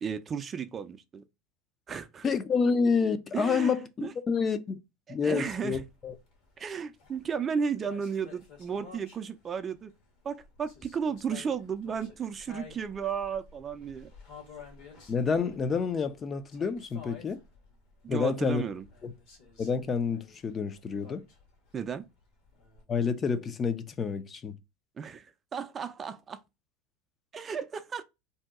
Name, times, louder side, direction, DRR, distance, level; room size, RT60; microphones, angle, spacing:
voice 1, 0.0-1.2 1.9-2.2 3.3-4.1 5.1-5.8 6.6-9.9 10.2-14.1 18.0-18.9 21.7-22.0 25.0-26.4 27.3-28.0, right 6 dB, 30° right, 0.4 m, -34 dB
voice 2, 2.2-4.8 5.1-6.2 15.1-17.4 18.1-18.6 19.0-19.1 19.6-21.2 22.9-24.6, left 5 dB, 30° left, 0.4 m, -28 dB
sound 1, 5.4-22.8, left 5 dB, 65° left, 1.2 m, -52 dB
2.7 x 2.2 x 3.6 m
hypercardioid pair, 100°, 0 cm